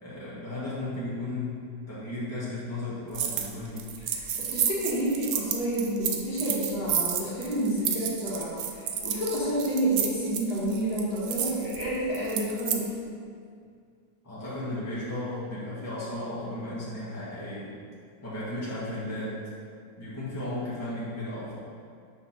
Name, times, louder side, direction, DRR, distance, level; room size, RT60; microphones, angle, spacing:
voice 1, 0.0-1.6 1.9-3.8 14.2-17.7 18.2-19.4 20.0-21.5, left 1 dB, 10° left, -10 dB, 1.6 m, -35 dB
sound 1, 3.1-3.5 3.8-12.8, right 8 dB, 70° right, 0.9 m, -31 dB
voice 2, 4.1-12.9, right 1 dB, 65° left, -9 dB, 2.2 m, -29 dB
6.5 x 3.6 x 5.8 m, 2.2 s
omnidirectional pair, 2.0 m